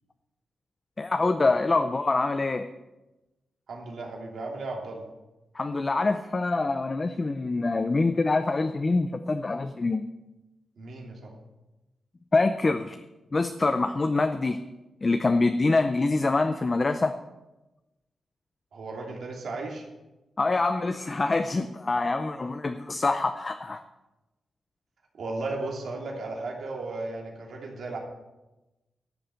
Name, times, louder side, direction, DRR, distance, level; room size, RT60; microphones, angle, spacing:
voice 1, 1.0-2.7 5.5-10.1 12.3-13.0 13.3-14.6 15.0-17.1 20.4-23.8, left 3 dB, 25° left, 8 dB, 0.5 m, -25 dB
voice 2, 3.7-5.0 10.8-11.3 18.7-19.8 25.2-28.0, right 3 dB, 65° right, 0 dB, 2.9 m, -35 dB
13.0 x 7.2 x 7.7 m, 1.0 s
wide cardioid pair, 155°, 0 cm